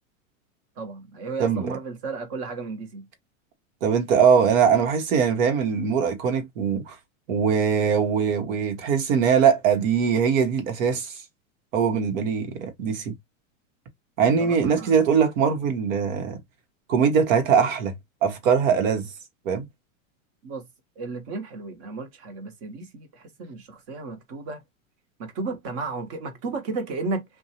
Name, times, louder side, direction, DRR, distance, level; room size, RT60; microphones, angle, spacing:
voice 1, 0.8-3.1 14.2-14.9 20.4-20.6 21.0-24.6 25.2-27.2, right 3 dB, 45° right, 1.1 m, -33 dB
voice 2, 3.8-7.0 7.3-11.2 11.7-13.1 14.2-16.4 16.9-17.9 18.2-19.1 19.4-19.6, right 7 dB, 70° right, 1.1 m, -21 dB
2.6 x 2.2 x 2.8 m
supercardioid pair, 140°, 41 cm